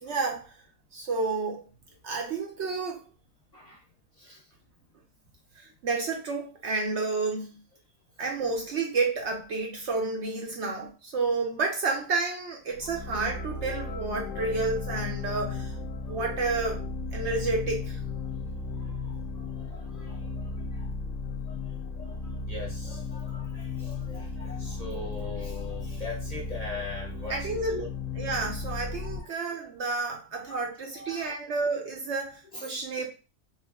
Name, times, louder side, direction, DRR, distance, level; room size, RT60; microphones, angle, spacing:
voice 1, 0.0-0.6 0.9-1.6 2.0-3.0 5.5-7.6 8.2-15.8 16.1-16.8 17.1-18.0 27.3-27.8 28.2-33.1, right 3 dB, 60° right, 0.8 m, -30 dB
voice 2, 3.5-3.8 4.1-4.5 12.8-12.9 16.0-16.2 17.2-17.3 18.2-20.9 21.5-27.9 29.0-29.3 30.4-30.6 30.9-31.4 32.5-32.8, left 3 dB, 35° left, 0.8 m, -42 dB
sound 1, 12.7-29.2, left 4 dB, 70° left, 0.8 m, -35 dB
3.1 x 2.5 x 3.4 m
omnidirectional pair, 1.5 m